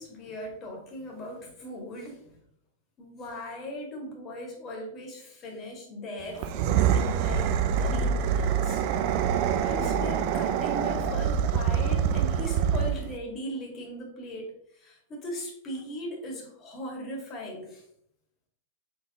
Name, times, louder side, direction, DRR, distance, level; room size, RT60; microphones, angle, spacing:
voice 1, 0.0-2.4 3.0-8.8 9.6-14.5 14.7-17.8, equal, 35° left, 0 dB, 1.8 m, -39 dB
sound 1, 6.3-13.1, right 8 dB, 55° right, 0.4 m, -25 dB
4.0 x 3.8 x 3.5 m, 0.73 s
hypercardioid pair, 115°, 0 cm